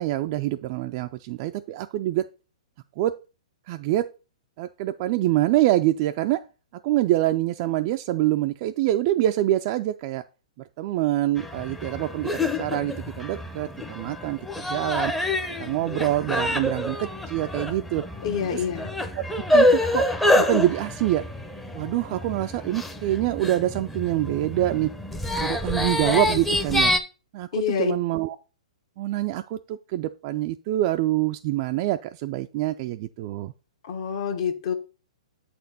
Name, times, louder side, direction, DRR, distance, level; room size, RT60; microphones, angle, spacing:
voice 1, 0.0-2.3 3.0-3.1 3.7-4.1 4.6-6.4 6.8-10.2 10.6-12.3 12.6-15.1 15.6-18.0 18.5-18.6 19.1-19.2 19.5-20.1 20.3-21.2 21.7-24.9 25.4-26.9 27.3-28.4 29.0-33.5, right 15 dB, 40° right, 7 dB, 0.3 m, -25 dB
sound 1, 11.4-27.0, left 1 dB, 5° left, 0.6 m, -26 dB
voice 2, 18.2-18.9 27.5-27.9 33.8-34.7, left 8 dB, 55° left, 6 dB, 1.2 m, -27 dB
7.6 x 4.3 x 4.0 m, 0.33 s
hypercardioid pair, 130°, 4 cm